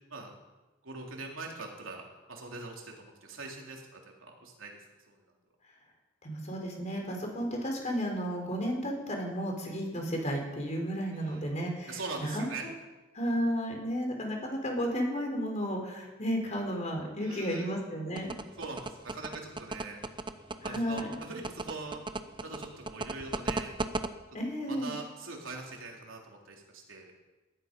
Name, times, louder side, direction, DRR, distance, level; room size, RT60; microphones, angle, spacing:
voice 1, 0.8-4.7 5.1-5.2 11.1-11.5 11.9-12.7 17.2-17.8 18.6-20.0 20.6-22.0 22.4-23.7 24.7-27.1, right 3 dB, 90° right, 0 dB, 3.5 m, -42 dB
voice 2, 6.2-12.7 13.1-18.3 20.6-21.1 24.3-25.0, equal, 35° left, 1 dB, 4.2 m, -33 dB
sound 1, 18.2-24.1, right 3 dB, 25° right, 0.8 m, -34 dB
19.5 x 13.0 x 5.4 m, 1.2 s
head